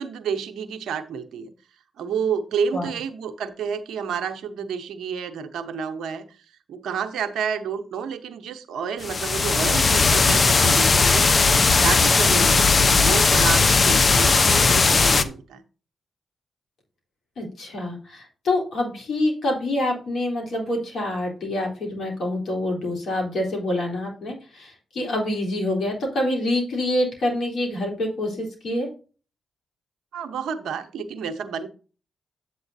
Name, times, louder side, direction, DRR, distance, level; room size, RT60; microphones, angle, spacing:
voice 1, 0.0-1.5 2.0-6.3 6.7-15.6 30.1-31.7, right 6 dB, 80° right, 9 dB, 0.8 m, -30 dB
sound 1, 9.0-15.2, left 4 dB, 50° left, 0.7 m, -18 dB
voice 2, 12.3-12.6 17.4-28.9, left 1 dB, 70° left, 0 dB, 3.3 m, -26 dB
8.3 x 8.0 x 2.7 m, 0.36 s
supercardioid pair, 45°, 0 cm